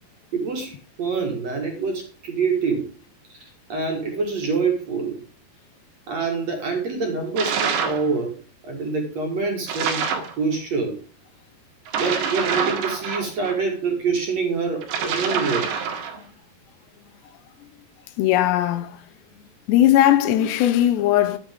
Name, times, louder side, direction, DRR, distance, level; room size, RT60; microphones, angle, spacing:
voice 1, 0.3-2.9 3.3-5.2 6.1-8.3 8.6-10.0 10.4-11.0 12.0-15.7 20.2-20.5, right 4 dB, 50° right, 2.5 m, -26 dB
sound 1, 7.4-8.1 9.7-10.3 11.9-13.6 14.8-16.2, right 6 dB, 90° right, 4.0 m, -26 dB
voice 2, 18.2-19.0 19.4-21.4, left 12 dB, 90° left, 3.1 m, -19 dB
10.0 x 9.1 x 3.6 m
omnidirectional pair, 4.8 m